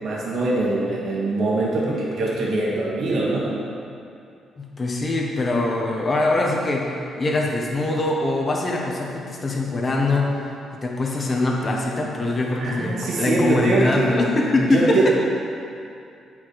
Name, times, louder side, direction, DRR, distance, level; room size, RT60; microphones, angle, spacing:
voice 1, 0.0-3.6 12.6-14.2 14.6-15.1, right 2 dB, 65° right, -5 dB, 1.7 m, -23 dB
voice 2, 4.6-10.3 10.7-15.1, left 2 dB, 35° left, -1 dB, 1.4 m, -23 dB
8.4 x 5.7 x 4.8 m, 2.5 s
cardioid pair, 90°, 0 cm